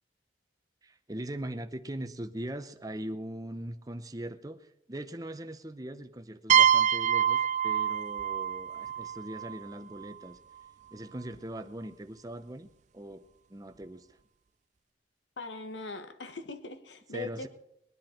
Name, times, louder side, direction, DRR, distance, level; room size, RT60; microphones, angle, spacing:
voice 1, 0.8-10.4 10.9-13.2 13.5-14.2 17.1-17.5, right 1 dB, 20° right, 9 dB, 0.8 m, -40 dB
sound 1, 6.5-10.1, right 9 dB, 40° right, 0.4 m, -26 dB
voice 2, 15.4-17.5, left 3 dB, 85° left, 9 dB, 1.3 m, -40 dB
21.0 x 10.5 x 4.4 m, 0.77 s
head